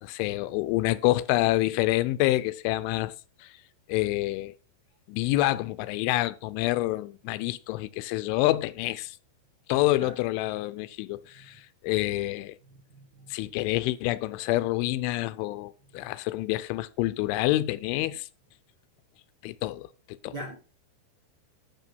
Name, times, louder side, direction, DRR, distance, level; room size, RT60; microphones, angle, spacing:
voice 1, 0.0-3.2 3.4-3.5 3.9-4.5 5.1-9.2 9.7-12.6 13.3-18.3 19.4-19.9 20.2-20.4, left 17 dB, 85° left, 3.1 m, -27 dB
voice 2, 12.9-13.3 20.2-20.6, right 1 dB, 75° right, 0.9 m, -40 dB
11.5 x 5.9 x 5.3 m
omnidirectional pair, 5.4 m